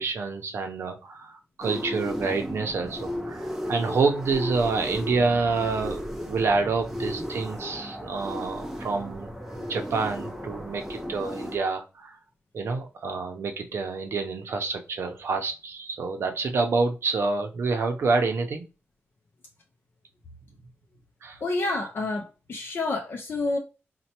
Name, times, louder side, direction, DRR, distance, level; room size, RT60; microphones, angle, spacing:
voice 1, 0.0-9.3 9.7-12.2 12.5-18.6 21.2-21.4, right 4 dB, 65° right, 0.6 m, -27 dB
sound 1, 1.6-11.6, equal, 5° right, 0.5 m, -35 dB
voice 2, 21.4-23.6, left 2 dB, 50° left, 0.5 m, -29 dB
4.2 x 2.2 x 2.8 m
wide cardioid pair, 170°, 5 cm